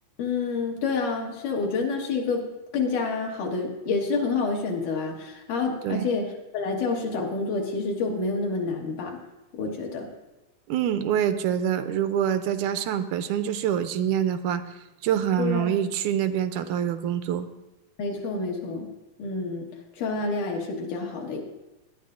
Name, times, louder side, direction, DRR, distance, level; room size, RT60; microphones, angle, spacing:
voice 1, 0.2-2.5 2.7-9.2 9.5-10.1 15.4-15.7 18.0-18.9 19.2-19.7 20.0-21.4, left 4 dB, 85° left, 0 dB, 3.2 m, -28 dB
voice 2, 10.7-14.6 15.0-17.5, right 9 dB, 85° right, 10 dB, 2.0 m, -25 dB
20.5 x 10.5 x 2.6 m, 1.0 s
omnidirectional pair, 3.5 m